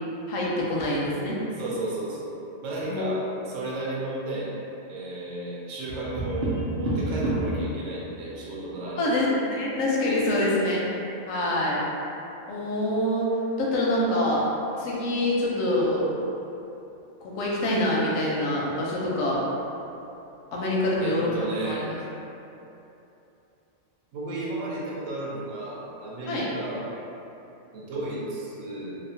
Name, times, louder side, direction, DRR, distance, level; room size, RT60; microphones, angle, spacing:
voice 1, 0.3-1.4 2.8-3.1 9.0-10.8 11.3-11.8 12.5-13.3 13.6-14.5 14.8-16.1 17.2-19.4 20.5-21.3 21.6-22.0 26.3-26.5, left 1 dB, 80° left, -4 dB, 1.0 m, -25 dB
voice 2, 1.6-4.5 4.9-9.2 10.2-10.6 21.0-21.9 24.1-26.9 27.7-29.0, right 2 dB, 80° right, -5 dB, 0.9 m, -33 dB
Tap, 5.9-7.6 9.6-10.3, right 1 dB, 55° right, 0.7 m, -29 dB
2.8 x 2.0 x 2.7 m, 2.9 s
omnidirectional pair, 1.4 m